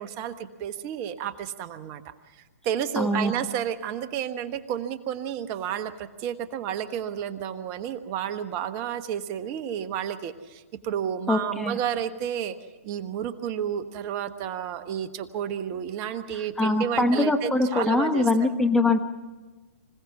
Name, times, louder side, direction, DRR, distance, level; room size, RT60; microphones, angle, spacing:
voice 1, 0.0-2.0 2.6-12.6 12.8-18.3, right 9 dB, 35° right, 10 dB, 1.2 m, -31 dB
voice 2, 3.0-3.3 11.3-11.8 16.6-19.0, left 2 dB, 5° left, 5 dB, 1.1 m, -23 dB
26.0 x 17.0 x 7.1 m, 1.3 s
figure-of-eight pair, 120°, 8 cm